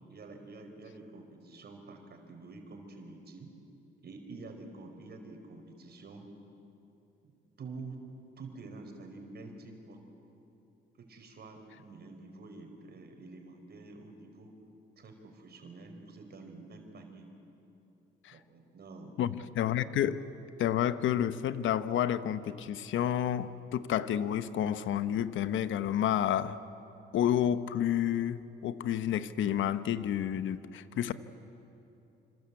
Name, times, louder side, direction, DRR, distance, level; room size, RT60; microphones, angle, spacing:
voice 1, 0.1-3.5 4.0-6.3 7.6-8.0 8.4-10.0 11.0-14.6 15.0-17.3 18.3-19.2, right 3 dB, 55° right, 4.8 m, -48 dB
voice 2, 19.2-20.2 20.6-26.6 27.1-31.1, left 10 dB, 75° left, 1.0 m, -30 dB
26.5 x 26.5 x 8.4 m
cardioid pair, 90°, 20 cm